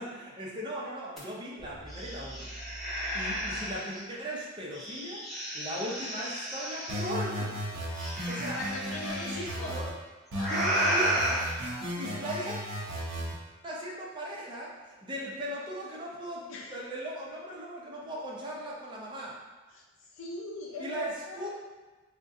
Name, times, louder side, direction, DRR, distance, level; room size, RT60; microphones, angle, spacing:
voice 1, 0.0-2.6 3.1-5.2 5.5-7.6 8.3-8.6 8.9-9.9 10.5-11.4 12.0-12.6 13.6-16.4 16.7-19.3 20.8-21.5, equal, 25° right, -4 dB, 0.5 m, -38 dB
sound 1, 1.2-1.3 1.6-4.0 4.7-7.1 8.0-9.5 10.3-11.4, equal, ahead, 0.9 m, -33 dB
sound 2, 6.9-9.9 10.3-13.3, equal, 70° right, 0.7 m, -35 dB
voice 2, 8.5-9.8 12.0-12.3 16.5-16.8 19.7-21.5, left 2 dB, 80° left, -2 dB, 0.5 m, -40 dB
3.5 x 2.1 x 2.6 m, 1.2 s
head